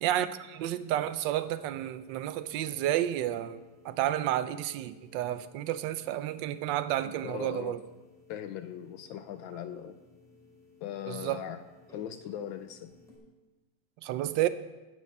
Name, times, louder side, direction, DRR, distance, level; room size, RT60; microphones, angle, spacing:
voice 1, 0.0-7.8 11.1-11.4 14.0-14.5, right 12 dB, 75° right, 12 dB, 1.1 m, -31 dB
sound 1, 1.4-13.2, left 3 dB, ahead, 2.7 m, -58 dB
voice 2, 7.0-7.8 8.3-10.0 10.8-11.6 11.9-12.9, left 10 dB, 75° left, 10 dB, 1.2 m, -39 dB
15.5 x 6.5 x 5.3 m, 1.2 s
omnidirectional pair, 2.4 m